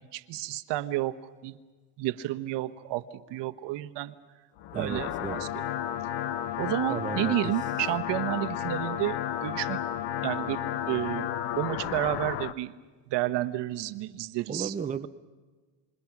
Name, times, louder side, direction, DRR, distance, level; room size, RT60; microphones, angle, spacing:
voice 1, 0.1-1.6 2.0-4.1 4.7-5.5 6.1-6.3 6.6-9.8 10.2-11.3 11.5-12.7 13.1-14.7, right 16 dB, 65° right, 11 dB, 1.2 m, -31 dB
sound 1, 4.6-12.5, left 11 dB, 65° left, 1.0 m, -32 dB
voice 2, 4.7-5.4 6.9-7.4 14.5-15.1, right 6 dB, 15° right, 8 dB, 0.7 m, -34 dB
27.0 x 27.0 x 6.0 m, 1.4 s
supercardioid pair, 105°, 46 cm